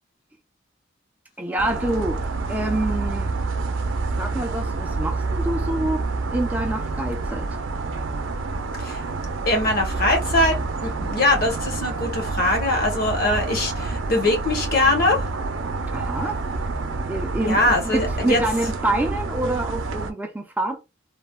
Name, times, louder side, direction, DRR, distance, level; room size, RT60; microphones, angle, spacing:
voice 1, 1.4-2.2 2.5-3.3 4.2-7.5 15.9-16.4 17.1-20.8, right 1 dB, 10° right, 0.4 m, -26 dB
sound 1, 1.6-20.1, right 3 dB, 75° right, 0.5 m, -28 dB
voice 2, 9.5-15.2 17.4-18.4, left 2 dB, 50° left, 0.9 m, -22 dB
3.2 x 2.1 x 2.2 m
head